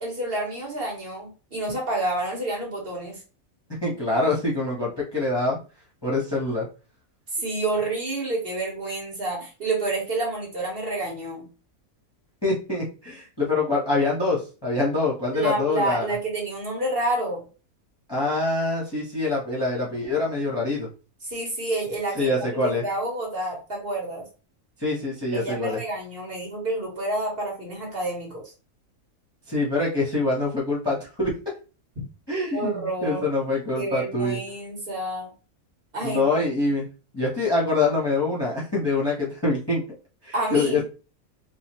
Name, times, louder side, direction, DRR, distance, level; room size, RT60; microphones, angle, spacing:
voice 1, 0.0-3.2 7.3-11.5 15.3-17.4 21.2-24.2 25.3-28.4 32.5-33.4 33.7-35.3 35.9-36.5 40.3-40.8, right 2 dB, 40° right, -2 dB, 1.5 m, -29 dB
voice 2, 3.8-5.6 6.0-6.6 12.4-16.1 18.1-20.9 22.1-22.8 24.8-25.8 29.5-31.3 32.3-34.4 36.0-36.9 37.1-39.8 40.2-40.8, left 3 dB, 20° left, -5 dB, 0.9 m, -25 dB
4.3 x 2.4 x 3.0 m, 0.35 s
omnidirectional pair, 1.5 m